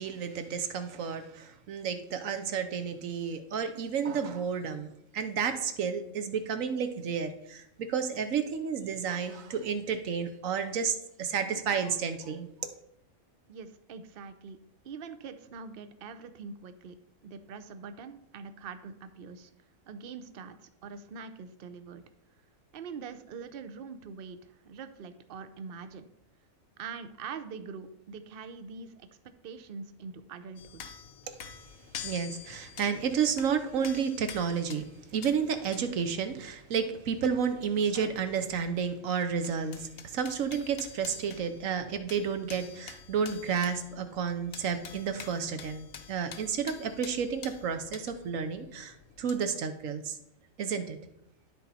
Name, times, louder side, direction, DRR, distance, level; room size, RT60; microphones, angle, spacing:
voice 1, 0.0-12.7 32.0-50.2 50.6-51.0, right 6 dB, 70° right, 9 dB, 1.2 m, -31 dB
voice 2, 13.5-14.6 14.8-17.0 17.2-19.5 19.9-22.0 22.7-26.1 26.8-29.1 29.4-30.8, right 5 dB, 50° right, 10 dB, 0.7 m, -43 dB
sound 1, 30.6-38.9 39.2-49.4, left 8 dB, 80° left, 1.2 m, -48 dB
12.5 x 4.2 x 4.2 m, 0.78 s
omnidirectional pair, 1.5 m